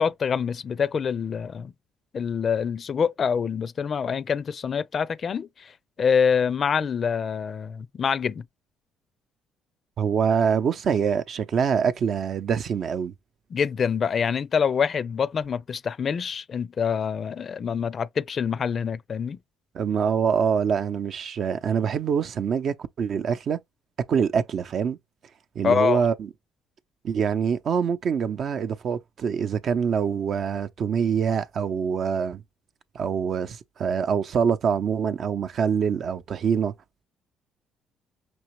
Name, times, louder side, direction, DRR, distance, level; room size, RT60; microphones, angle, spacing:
voice 1, 0.0-1.7 2.1-5.7 6.0-8.4 13.5-19.4 25.6-26.0, left 6 dB, 50° left, 0.5 m, -25 dB
voice 2, 10.0-13.1 19.7-23.6 24.1-25.0 25.6-26.3 27.0-32.4 32.9-36.7, right 7 dB, 55° right, 0.6 m, -25 dB
6.0 x 2.7 x 3.1 m
hypercardioid pair, 60°, 0 cm